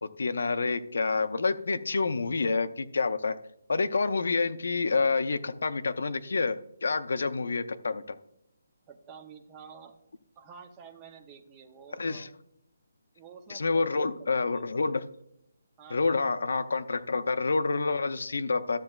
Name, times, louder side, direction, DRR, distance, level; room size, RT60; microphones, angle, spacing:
voice 1, 0.0-3.4 3.7-8.2 12.0-12.3 13.5-15.0 15.9-18.8, left 4 dB, 65° left, 11 dB, 0.6 m, -28 dB
voice 2, 8.9-10.0 10.4-12.3 13.2-14.6 15.8-16.3, right 6 dB, 15° right, 4 dB, 0.5 m, -50 dB
13.0 x 7.5 x 2.3 m, 0.79 s
hypercardioid pair, 175°, 0 cm